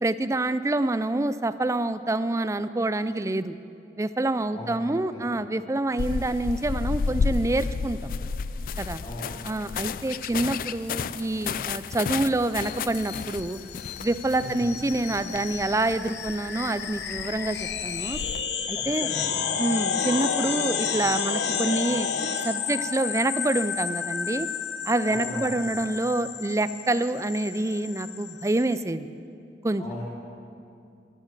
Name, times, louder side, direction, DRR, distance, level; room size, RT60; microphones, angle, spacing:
voice 1, 0.0-3.6 4.0-8.1 8.8-9.0 9.4-13.6 14.0-18.2 18.7-19.1 19.6-22.1 22.4-24.5 24.9-29.1 29.6-29.8, right 2 dB, 15° right, 13 dB, 0.4 m, -27 dB
sound 1, 6.0-18.4, left 5 dB, 50° left, 0.3 m, -33 dB
sound 2, 12.5-28.8, left 7 dB, 80° left, 0.9 m, -31 dB
voice 2, 18.7-19.6 25.0-25.6 29.8-30.0, left 1 dB, 30° left, -6 dB, 2.8 m, -37 dB
15.0 x 11.5 x 7.4 m, 2.5 s
head